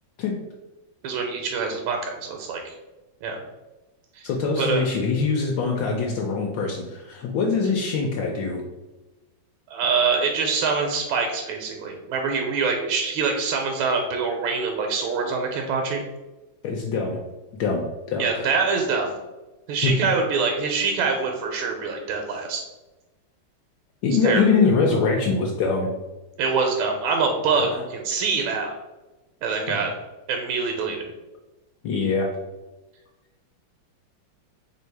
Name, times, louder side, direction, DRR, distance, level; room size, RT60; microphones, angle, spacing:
voice 1, 1.0-2.7 3.2-3.4 4.2-4.3 4.6-4.8 9.7-16.0 18.2-19.1 19.7-22.7 24.2-24.4 26.4-28.7 29.4-29.9 30.3-31.1, right 5 dB, 90° right, 3 dB, 1.4 m, -25 dB
voice 2, 4.2-8.6 16.6-17.2 17.5-18.5 19.8-19.9 24.0-25.9 27.7-27.8 29.7-29.8 31.8-32.3, left 4 dB, 75° left, 0 dB, 1.2 m, -23 dB
3.3 x 2.6 x 4.4 m, 1.1 s
omnidirectional pair, 2.2 m